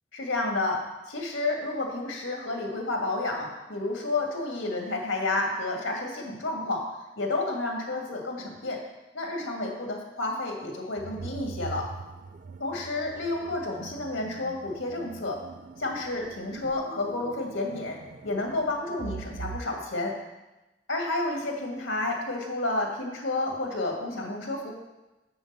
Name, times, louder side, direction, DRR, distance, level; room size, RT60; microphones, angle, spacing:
voice 1, 0.1-6.9 7.2-8.8 9.1-11.9 12.6-15.4 15.8-20.2 20.9-24.7, left 2 dB, 90° left, 1 dB, 2.0 m, -30 dB
sound 1, 11.0-19.6, right 4 dB, 40° right, 0.3 m, -43 dB
7.0 x 6.7 x 6.8 m, 1.0 s
head